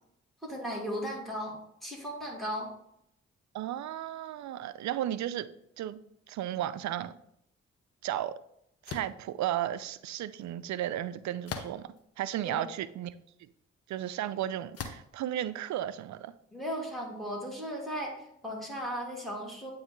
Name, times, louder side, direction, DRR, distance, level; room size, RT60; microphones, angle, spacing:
voice 1, 0.4-2.7 12.4-12.7 16.5-19.7, equal, ahead, 2.6 m, -36 dB
voice 2, 3.5-5.5 5.8-6.0 6.3-7.1 8.0-8.3 8.8-13.1 13.9-16.3, right 12 dB, 70° right, 0.4 m, -34 dB
sound 1, 8.9-9.2 11.5-12.0 12.7-12.8 14.7-15.2, left 6 dB, 55° left, 0.8 m, -39 dB
8.7 x 3.1 x 3.7 m
supercardioid pair, 45°, 30 cm